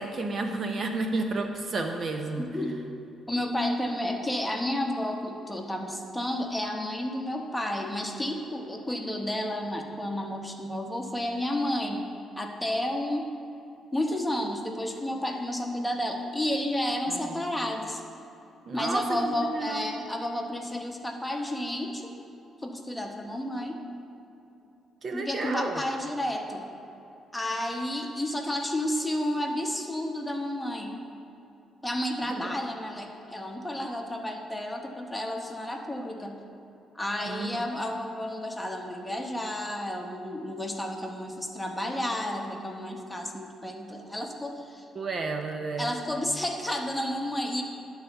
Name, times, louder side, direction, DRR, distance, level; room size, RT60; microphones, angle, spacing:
voice 1, 0.0-2.5 17.1-17.4 18.7-19.8 25.0-25.8 32.3-32.5 37.3-37.7 44.9-45.9, right 3 dB, 45° right, 4 dB, 0.8 m, -32 dB
voice 2, 2.4-2.7 3.3-12.0 12.4-13.3 13.9-18.0 18.7-22.1 22.6-23.8 25.1-26.6 27.3-31.0 31.8-36.3 36.9-44.8 45.8-47.6, left 1 dB, 10° left, 2 dB, 1.0 m, -31 dB
11.0 x 4.0 x 6.9 m, 2.8 s
cardioid pair, 90°, 0 cm